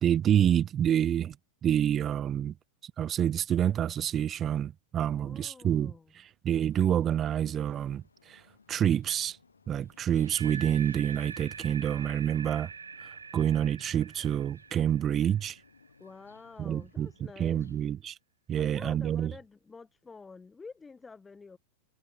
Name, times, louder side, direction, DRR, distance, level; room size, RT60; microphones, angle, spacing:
voice 1, 0.0-1.4 1.6-2.5 2.8-5.9 6.4-8.4 8.7-9.4 9.7-12.7 13.3-15.6 16.6-17.1 17.4-18.2 18.5-19.3, right 10 dB, 25° right, 0.6 m, -27 dB
voice 2, 5.1-6.1 16.0-17.6 18.6-21.6, left 4 dB, 15° left, 1.2 m, -48 dB
sound 1, 6.7-17.9, left 5 dB, 75° left, 3.7 m, -62 dB
sound 2, 10.1-16.1, right 6 dB, 75° right, 0.7 m, -44 dB
figure-of-eight pair, 90°, 0 cm